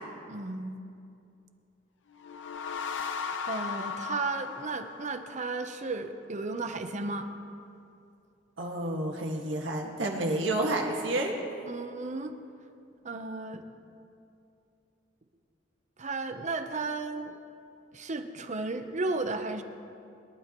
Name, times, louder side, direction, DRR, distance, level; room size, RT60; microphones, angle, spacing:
voice 1, 0.3-0.8 3.4-7.3 11.7-12.3 13.0-13.7 16.0-17.4 17.9-19.6, right 3 dB, 40° right, 8 dB, 0.8 m, -34 dB
sound 1, 2.1-5.6, left 6 dB, 70° left, 0.7 m, -37 dB
voice 2, 8.6-11.4, right 1 dB, 75° right, 0 dB, 1.8 m, -30 dB
22.0 x 12.0 x 3.0 m, 2.6 s
head